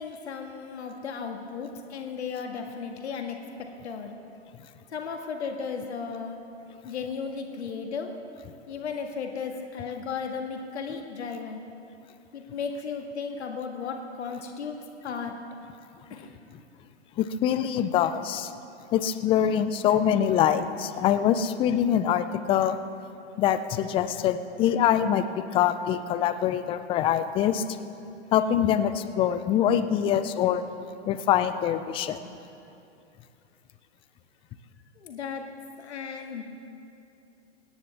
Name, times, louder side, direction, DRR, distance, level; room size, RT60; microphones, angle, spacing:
voice 1, 0.0-3.4 3.8-4.2 4.9-6.4 6.8-8.1 8.7-11.6 12.3-14.8 15.0-15.3 16.1-16.3 35.0-35.4 35.8-36.4, left 5 dB, 70° left, 3 dB, 1.8 m, -35 dB
voice 2, 17.2-18.5 18.9-22.8 23.4-27.6 28.3-30.6 31.1-32.2, left 9 dB, 15° left, 11 dB, 0.4 m, -24 dB
24.0 x 10.0 x 3.4 m, 2.6 s
figure-of-eight pair, 105°, 35 cm